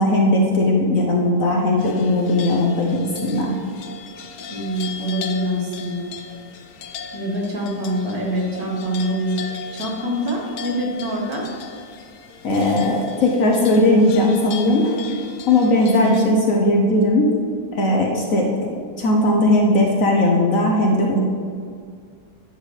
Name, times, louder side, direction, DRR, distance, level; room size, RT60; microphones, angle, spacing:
voice 1, 0.0-3.6 12.4-15.0 15.5-17.3 17.7-21.2, left 1 dB, 60° left, 0 dB, 1.2 m, -18 dB
sound 1, 1.8-16.3, left 6 dB, 75° left, 1.2 m, -37 dB
voice 2, 4.5-6.1 7.1-11.4, equal, 65° right, -1 dB, 1.9 m, -25 dB
10.5 x 7.5 x 3.3 m, 2.2 s
omnidirectional pair, 1.7 m